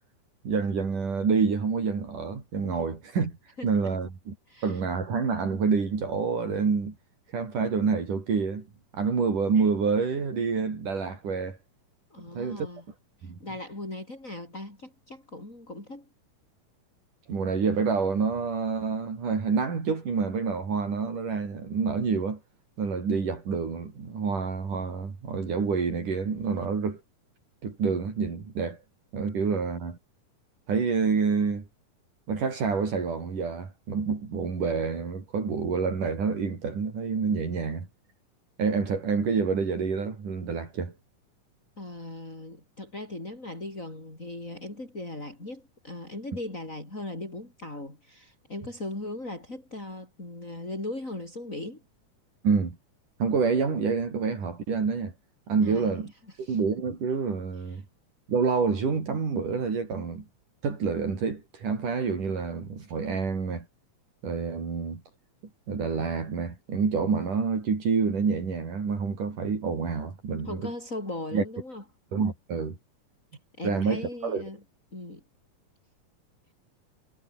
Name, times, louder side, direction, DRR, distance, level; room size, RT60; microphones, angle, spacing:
voice 1, 0.4-3.4 3.6-4.3 4.6-7.0 7.3-8.7 8.9-11.6 12.3-12.7 13.2-13.4 17.3-22.4 22.8-27.0 27.6-28.8 29.1-30.0 30.7-31.6 32.3-37.9 38.6-40.9 52.4-52.8 53.2-55.1 55.5-56.1 56.5-57.8 58.3-60.2 60.6-63.7 64.2-65.0 65.7-70.6 71.3-71.4 72.1-72.8 73.6-74.4, right 5 dB, 70° right, 6.3 m, -27 dB
voice 2, 3.6-4.0 4.5-4.8 12.1-12.8 13.2-16.1 41.8-51.8 55.6-55.9 56.3-56.6 57.6-57.8 70.4-71.8 73.6-74.6 74.9-75.2, left 2 dB, 20° left, 8.1 m, -38 dB
omnidirectional pair, 3.7 m